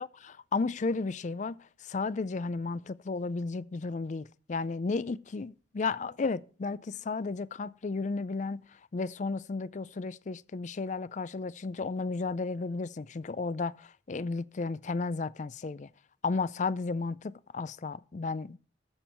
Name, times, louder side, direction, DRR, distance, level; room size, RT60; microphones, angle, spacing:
voice 1, 0.0-1.6 1.8-8.6 8.9-15.9 16.2-18.6, left 4 dB, 40° left, 0.4 m, -33 dB
13.5 x 7.0 x 4.5 m
head